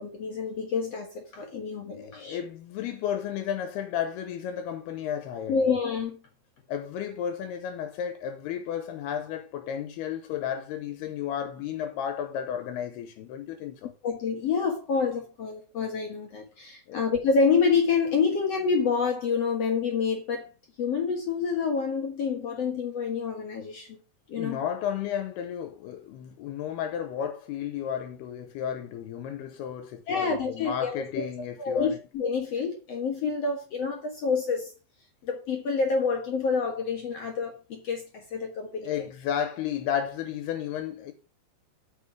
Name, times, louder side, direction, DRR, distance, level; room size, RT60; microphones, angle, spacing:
voice 1, 0.0-2.4 5.5-6.2 14.0-20.5 20.8-24.0 24.3-24.6 30.1-31.3 31.6-34.7 35.2-39.1, left 5 dB, 55° left, 1.8 m, -28 dB
voice 2, 2.0-5.7 6.7-13.9 16.9-17.1 24.3-32.0 38.8-41.1, left 9 dB, 80° left, 2.8 m, -33 dB
8.4 x 5.7 x 6.1 m
omnidirectional pair, 4.7 m